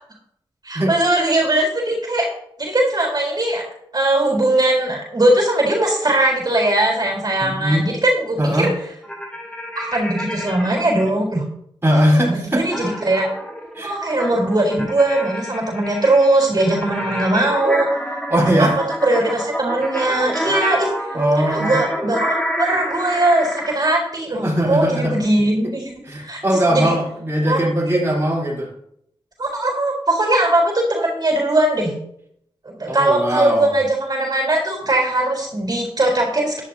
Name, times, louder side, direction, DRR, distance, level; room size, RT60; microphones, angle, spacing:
voice 1, 0.6-2.3 2.6-3.6 3.9-8.7 9.7-11.4 12.2-13.3 13.8-17.9 18.6-18.7 19.0-20.9 21.5-25.9 26.2-26.4 26.7-26.9 27.4-27.6 27.9-28.0 29.4-31.9 32.6-36.6, right 1 dB, 45° right, 0 dB, 4.1 m, -19 dB
voice 2, 7.4-7.8 8.4-8.7 11.8-12.8 13.7-13.9 18.3-18.8 21.1-21.8 24.4-25.1 26.1-28.7 32.9-33.7, equal, 25° right, -4 dB, 4.1 m, -19 dB
sound 1, 9.0-11.1 12.7-23.8, equal, 10° left, 2.1 m, -28 dB
14.0 x 11.0 x 2.8 m, 0.72 s
wide cardioid pair, 80°, 10 cm